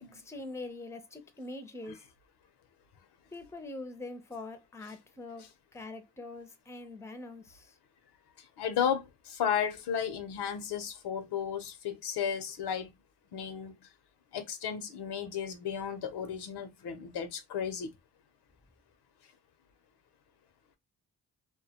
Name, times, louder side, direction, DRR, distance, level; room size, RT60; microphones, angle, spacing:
voice 1, 0.1-2.1 3.3-7.8, left 2 dB, 5° left, 0.5 m, -44 dB
voice 2, 8.6-12.9 13.3-13.9 14.3-17.9, left 8 dB, 90° left, 0.6 m, -34 dB
2.2 x 2.1 x 2.7 m
cardioid pair, 60°, 38 cm